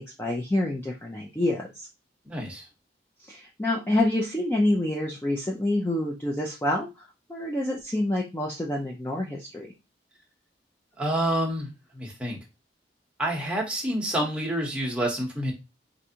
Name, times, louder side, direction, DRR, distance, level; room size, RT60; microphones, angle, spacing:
voice 1, 0.0-1.9 3.3-9.7, left 1 dB, 15° left, -2 dB, 0.4 m, -27 dB
voice 2, 2.2-2.7 11.0-12.4 13.2-15.5, right 1 dB, 5° right, -1 dB, 0.9 m, -28 dB
4.7 x 2.5 x 2.8 m, 0.26 s
head